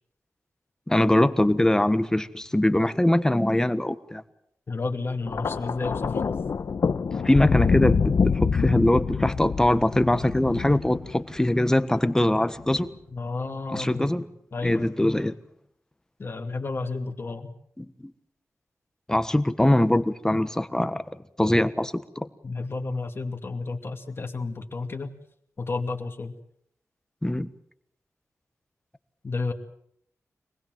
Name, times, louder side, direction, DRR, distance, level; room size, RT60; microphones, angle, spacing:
voice 1, 0.9-4.2 7.2-12.9 13.7-14.2 14.6-15.4 17.8-18.1 19.1-21.0 21.4-22.3 27.2-27.5, left 1 dB, 10° left, 11 dB, 1.3 m, -22 dB
voice 2, 4.7-6.3 13.1-14.1 14.5-14.9 16.2-17.5 22.4-25.1 25.6-26.3 29.2-29.5, left 3 dB, 45° left, 4 dB, 2.5 m, -31 dB
Thunder, 5.3-11.6 12.6-12.9, left 5 dB, 65° left, 1.1 m, -26 dB
26.0 x 20.0 x 7.8 m, 0.70 s
wide cardioid pair, 110°, 6 cm